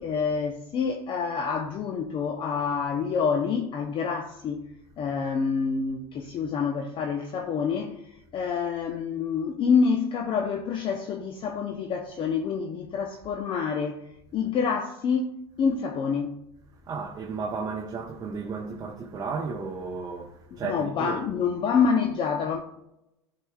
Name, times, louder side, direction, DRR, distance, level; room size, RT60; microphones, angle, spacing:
voice 1, 0.0-4.7 5.0-8.0 8.3-14.0 14.3-15.3 15.6-16.4 20.5-22.6, left 6 dB, 40° left, 0.7 m, -27 dB
voice 2, 16.8-21.5, right 4 dB, 30° right, 0.9 m, -34 dB
11.0 x 4.9 x 2.3 m
hypercardioid pair, 95°, 14 cm